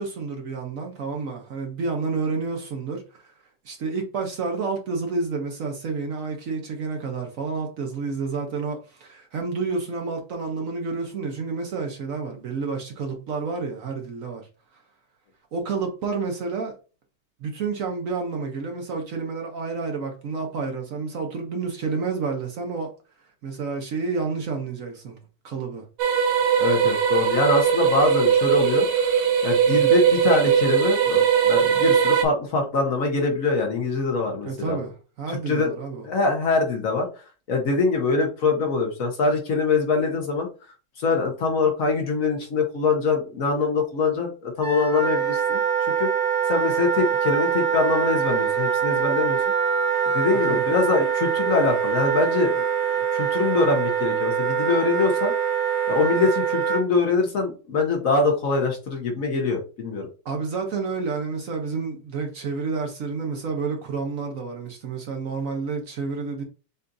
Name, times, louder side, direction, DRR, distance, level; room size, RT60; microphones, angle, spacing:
voice 1, 0.0-3.3 3.6-14.5 15.5-16.7 17.4-22.9 23.4-25.2 25.4-25.8 29.7-30.0 34.4-36.0 50.5-50.6 60.2-66.4, right 4 dB, 60° right, 1.0 m, -29 dB
sound 1, 26.0-32.2, right 8 dB, 85° right, 1.4 m, -20 dB
voice 2, 26.6-34.8 35.3-35.7 36.0-37.1 37.5-40.5 41.0-45.6 46.0-49.4 49.7-49.8 50.1-52.6 53.1-55.3 55.9-60.1, left 4 dB, 55° left, 1.2 m, -24 dB
Wind instrument woodwind instrument, 44.6-56.8, right 7 dB, 20° right, 1.1 m, -24 dB
6.6 x 2.5 x 2.6 m
omnidirectional pair, 1.8 m